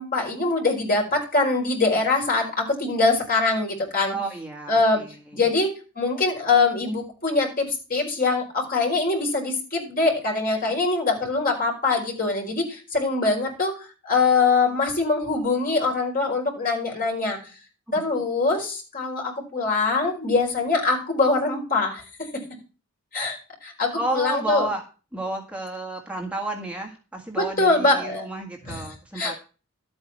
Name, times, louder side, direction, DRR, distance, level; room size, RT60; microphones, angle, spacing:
voice 1, 0.0-4.2 4.7-5.0 5.3-17.4 17.9-22.4 23.1-24.7 27.4-28.2 28.7-28.8 29.2-29.4, left 3 dB, 40° left, -1 dB, 5.2 m, -23 dB
voice 2, 4.1-5.4 23.9-24.8 25.1-29.3, right 2 dB, 5° right, 1 dB, 1.8 m, -31 dB
12.5 x 8.9 x 4.4 m, 0.33 s
head